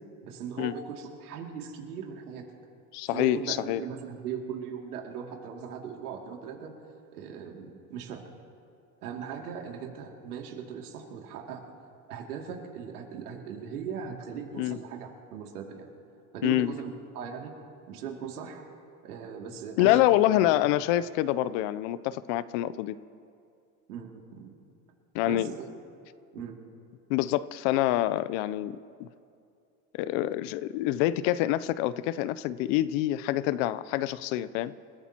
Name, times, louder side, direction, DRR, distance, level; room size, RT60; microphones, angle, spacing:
voice 1, 0.2-2.4 3.1-6.7 7.1-8.3 9.0-11.7 12.1-15.9 16.3-17.5 17.9-18.7 19.0-20.6 23.9-24.6 25.2-25.7 26.3-26.6, right 7 dB, 80° right, 1 dB, 2.7 m, -39 dB
voice 2, 2.9-3.8 14.6-14.8 16.4-16.7 19.8-23.0 25.1-25.5 27.1-29.1 29.9-34.7, left 14 dB, 55° left, 17 dB, 0.7 m, -26 dB
28.5 x 15.0 x 3.0 m, 2.5 s
hypercardioid pair, 95°, 45 cm